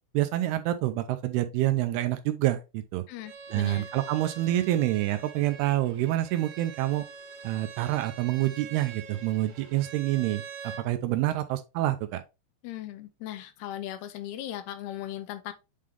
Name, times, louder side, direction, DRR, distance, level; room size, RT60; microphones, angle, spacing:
voice 1, 0.1-3.0 3.5-7.1 7.4-12.2, right 15 dB, 85° right, 2.5 m, -27 dB
voice 2, 3.1-3.9 12.6-15.5, left 12 dB, 80° left, 2.7 m, -38 dB
Bowed string instrument, 3.2-10.9, right 6 dB, 65° right, 3.0 m, -44 dB
8.4 x 3.7 x 3.2 m
omnidirectional pair, 4.8 m